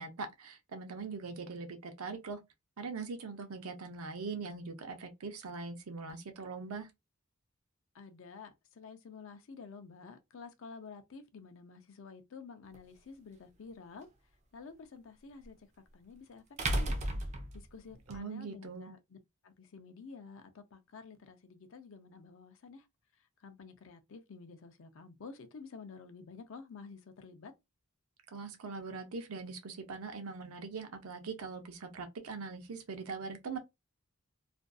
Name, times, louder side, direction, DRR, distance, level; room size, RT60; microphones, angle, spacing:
voice 1, 0.0-2.4 2.8-6.9 18.1-18.9 28.3-33.6, right 4 dB, 85° right, 0.6 m, -42 dB
voice 2, 7.9-14.1 14.5-15.7 15.9-16.4 16.7-17.0 17.5-19.2 19.4-22.9 23.1-27.5, left 5 dB, 60° left, 0.5 m, -50 dB
sound 1, 12.7-12.8 15.4-15.5 16.6-18.2, right 1 dB, 30° right, 0.4 m, -33 dB
2.5 x 2.3 x 2.4 m
head